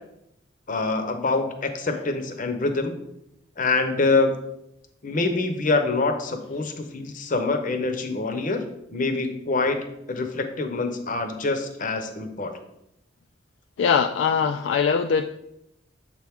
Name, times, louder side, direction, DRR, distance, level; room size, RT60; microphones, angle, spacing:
voice 1, 0.7-3.0 3.6-4.3 5.0-8.6 8.9-12.5, left 3 dB, 45° left, 7 dB, 0.7 m, -25 dB
voice 2, 13.8-15.3, left 6 dB, 65° left, 6 dB, 0.3 m, -22 dB
7.3 x 4.5 x 3.6 m, 0.82 s
head